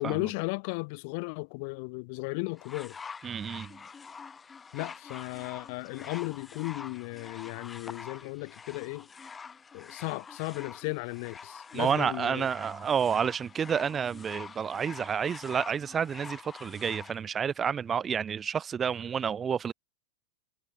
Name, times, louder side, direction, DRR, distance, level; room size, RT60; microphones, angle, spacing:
voice 1, 0.0-3.0 4.7-9.1 9.7-12.5, left 31 dB, 45° left, 0.7 m, -35 dB
sound 1, 2.6-17.2 18.0-18.1, left 5 dB, 15° left, 6.5 m, -46 dB
voice 2, 3.2-3.8 11.7-19.7, right 7 dB, 20° right, 0.4 m, -30 dB
figure-of-eight pair, 90°, 0 cm